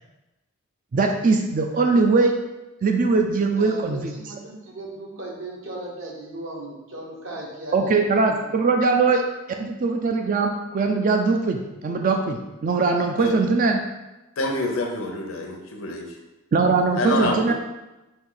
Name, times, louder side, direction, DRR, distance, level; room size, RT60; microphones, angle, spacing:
voice 1, 0.9-2.3 2.8-4.1 7.7-9.2 9.6-13.8 16.5-17.5, right 4 dB, 40° right, 4 dB, 0.3 m, -21 dB
voice 2, 3.6-8.4, right 1 dB, 65° right, -2 dB, 1.0 m, -37 dB
voice 3, 14.4-16.0 17.0-17.5, left 2 dB, 75° left, 2 dB, 0.7 m, -26 dB
4.3 x 2.7 x 3.9 m, 1.0 s
head